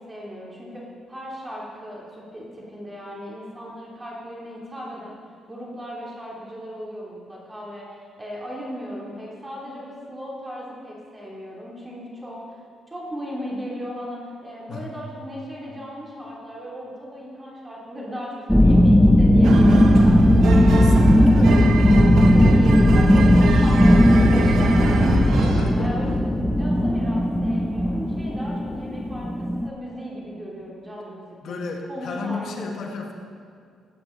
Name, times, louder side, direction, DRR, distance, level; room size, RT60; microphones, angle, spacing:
voice 1, 0.0-5.2 5.5-12.4 12.9-21.7 22.3-25.2 25.5-31.6 31.9-33.0, equal, 20° right, -4 dB, 2.9 m, -37 dB
sound 1, 18.5-29.7, left 1 dB, 5° left, 0.7 m, -16 dB
sound 2, 19.4-25.7, right 4 dB, 75° right, 1.1 m, -25 dB
voice 2, 20.7-21.6 25.1-25.9 31.4-33.1, left 4 dB, 65° left, 1 dB, 1.5 m, -32 dB
16.0 x 9.0 x 3.9 m, 2.2 s
cardioid pair, 90°, 0 cm